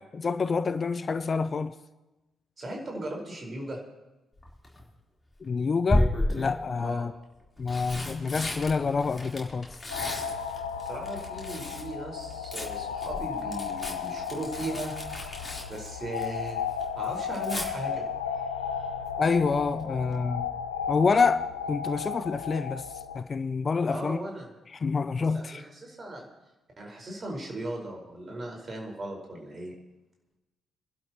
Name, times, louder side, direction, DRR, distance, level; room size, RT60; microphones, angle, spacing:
voice 1, 0.1-1.7 5.4-7.1 7.6-9.7 19.2-20.5 20.9-22.8 23.1-24.2 24.7-25.6, left 4 dB, 35° left, 13 dB, 0.6 m, -27 dB
voice 2, 2.6-3.8 6.8-7.1 10.8-15.4 15.7-16.6 16.9-19.0 23.8-24.5 25.2-26.2 26.8-29.7, right 1 dB, 35° right, 0 dB, 4.8 m, -38 dB
Tearing, 4.4-4.8 5.9-6.6 7.4-11.9 12.2-16.5 16.8-17.7 19.5-19.8 20.1-20.2, left 1 dB, 15° left, 3.9 m, -33 dB
sound 1, 9.9-23.2, left 7 dB, 80° left, 0.5 m, -34 dB
27.0 x 12.0 x 3.0 m, 1.0 s
figure-of-eight pair, 40°, 0 cm